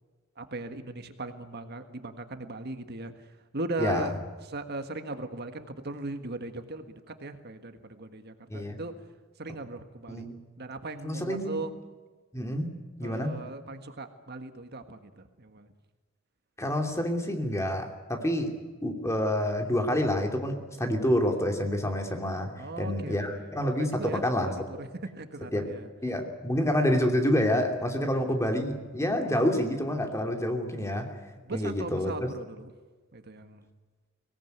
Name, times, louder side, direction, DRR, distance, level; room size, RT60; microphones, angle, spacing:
voice 1, 0.4-3.1 3.5-4.1 4.4-9.0 9.4-10.3 10.6-11.7 13.0-15.7 22.6-24.2 24.7-25.9 28.1-28.2 31.4-32.7 33.1-33.6, right 2 dB, 55° right, 8 dB, 1.6 m, -38 dB
voice 2, 3.8-4.1 8.5-8.8 10.1-10.3 11.0-11.6 12.3-12.7 13.0-13.4 16.6-18.5 18.8-24.5 25.5-25.7 26.0-31.1 31.5-32.1, left 1 dB, 15° left, 4 dB, 2.9 m, -28 dB
24.0 x 18.5 x 9.4 m, 1.4 s
head